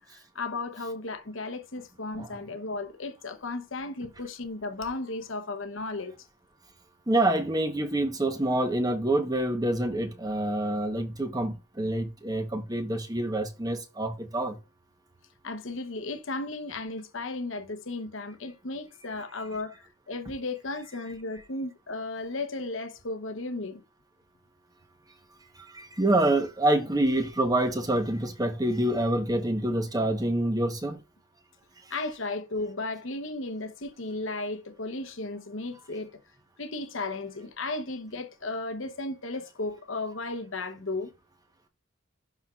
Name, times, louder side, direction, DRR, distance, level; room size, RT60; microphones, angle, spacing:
voice 1, 0.0-6.1 15.4-23.8 31.9-36.1 36.6-41.1, left 2 dB, 65° left, 1.0 m, -35 dB
voice 2, 7.1-14.6 25.6-31.0, right 1 dB, 20° right, 1.0 m, -27 dB
11.5 x 4.4 x 2.4 m
head